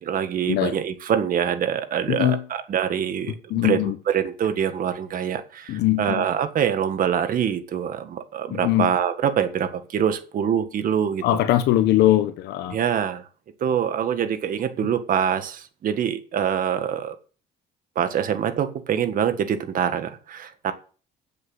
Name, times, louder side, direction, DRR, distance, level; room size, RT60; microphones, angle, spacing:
voice 1, 0.0-11.4 12.7-13.2 13.6-17.2 18.0-20.7, right 8 dB, 55° right, 9 dB, 1.7 m, -25 dB
voice 2, 2.1-2.5 3.5-4.0 5.7-6.2 8.5-8.9 11.2-12.8, left 14 dB, 80° left, 10 dB, 1.1 m, -21 dB
8.3 x 7.6 x 8.0 m, 0.38 s
cardioid pair, 110°, 17 cm